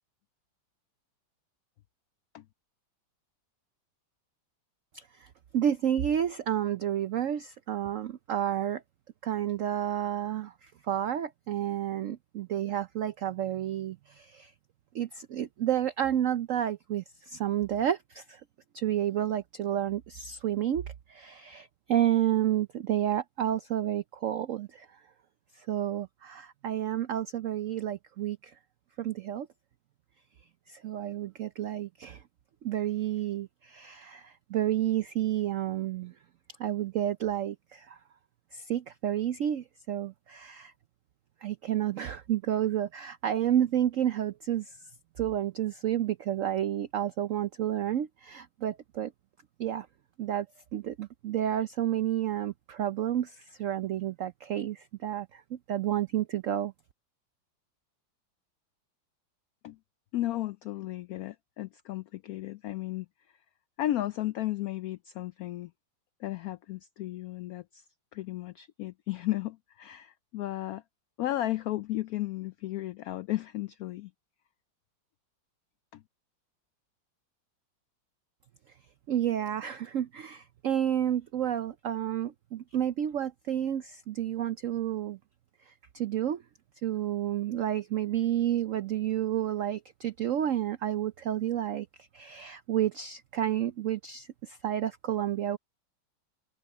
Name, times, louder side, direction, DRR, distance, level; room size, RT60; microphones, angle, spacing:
voice 1, 4.9-5.3 5.5-8.8 9.2-14.5 14.9-18.4 18.7-24.9 25.6-28.5 29.0-29.5 30.7-32.2 32.6-36.1 36.6-38.0 38.5-40.7 41.4-44.7 45.2-49.1 49.6-49.9 50.2-50.5 50.7-56.7 79.1-85.2 85.7-86.4 86.8-91.9 92.1-95.6, right 11 dB, 85° right, 0.7 m, -30 dB
voice 2, 60.1-63.1 63.8-65.7 66.2-67.8 68.1-70.8 71.2-74.1 75.9-76.0, left 15 dB, 80° left, 0.8 m, -34 dB
omnidirectional pair, 2.1 m